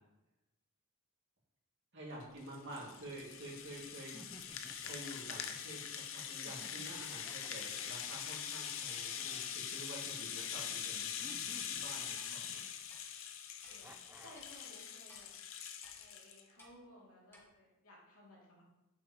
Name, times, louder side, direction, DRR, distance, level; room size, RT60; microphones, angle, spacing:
voice 1, 1.9-4.2 4.8-12.6, right 1 dB, 55° right, -4 dB, 2.3 m, -49 dB
Rattle (instrument), 2.2-16.4, left 8 dB, 65° left, 0.7 m, -43 dB
sound 1, 2.5-3.6 4.1-5.8 6.5-10.2 11.2-13.0 13.8-14.6, right 1 dB, 10° right, 0.5 m, -59 dB
Clock, 12.2-12.3 12.9-13.0 13.6-13.7 14.3-14.5 15.1-15.2 15.8-16.0 16.6-16.7 17.3-17.4, left 1 dB, 10° left, 1.3 m, -58 dB
voice 2, 13.6-15.3 15.9-18.6, left 1 dB, 85° left, -4 dB, 2.7 m, -59 dB
8.6 x 7.1 x 3.0 m, 0.98 s
head